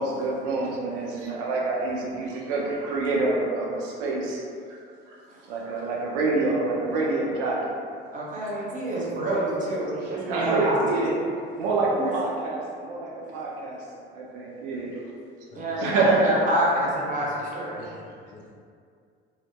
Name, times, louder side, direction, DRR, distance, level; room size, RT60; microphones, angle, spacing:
voice 1, 0.0-4.4 4.7-4.8 5.1-5.2 5.5-7.8 10.0-11.1 11.6-13.8 14.1-14.9 15.8-16.3 17.8-17.9, right 3 dB, 70° right, -3 dB, 0.5 m, -27 dB
voice 2, 8.1-10.7 12.0-12.1 15.5-17.7, right 1 dB, 25° right, -6 dB, 0.8 m, -27 dB
voice 3, 15.5-16.2 17.2-17.3 17.7-18.5, left 3 dB, 25° left, -3 dB, 0.4 m, -45 dB
2.6 x 2.1 x 2.2 m, 2.3 s
hypercardioid pair, 60°, 30 cm